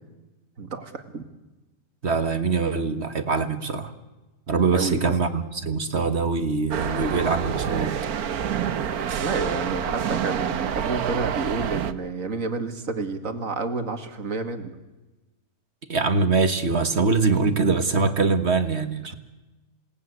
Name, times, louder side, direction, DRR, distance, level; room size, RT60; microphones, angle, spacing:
voice 1, 0.6-1.2 4.7-5.0 9.2-14.8 19.1-19.2, right 4 dB, 65° right, 8 dB, 2.4 m, -30 dB
voice 2, 2.0-3.9 4.5-7.9 15.9-19.1, right 4 dB, 50° right, 10 dB, 1.7 m, -23 dB
sound 1, 6.7-11.9, right 8 dB, 90° right, 1.5 m, -27 dB
28.0 x 19.0 x 9.7 m, 1.1 s
omnidirectional pair, 1.5 m